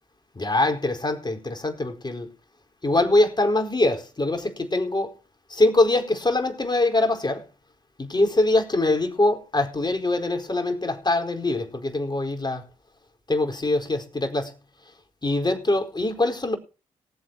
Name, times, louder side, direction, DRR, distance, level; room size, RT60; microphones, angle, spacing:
voice 1, 0.4-2.3 2.8-5.1 5.5-7.4 8.0-12.6 13.3-14.5 15.2-16.6, left 2 dB, 30° left, 4.5 m, -23 dB
19.0 x 7.9 x 4.6 m
hypercardioid pair, 40°, 15 cm